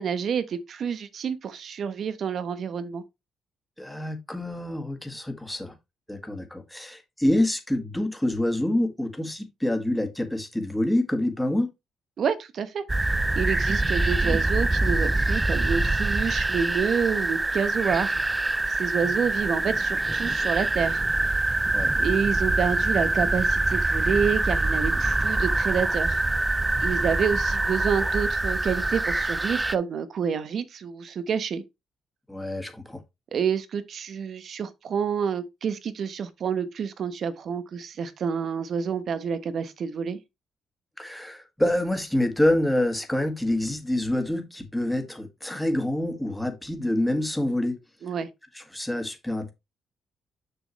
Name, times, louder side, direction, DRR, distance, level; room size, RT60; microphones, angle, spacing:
voice 1, 0.0-3.0 12.2-12.8 13.3-21.4 22.0-26.2 26.8-31.6 33.3-40.2 48.0-48.3, right 7 dB, 60° right, 1.1 m, -28 dB
voice 2, 3.8-5.7 6.1-11.7 21.7-22.0 32.3-33.0 41.0-47.8 48.5-49.5, left 1 dB, 5° left, 1.9 m, -26 dB
sound 1, 12.9-29.8, right 2 dB, 15° right, 0.5 m, -25 dB
6.9 x 6.2 x 3.2 m
cardioid pair, 90°, 0 cm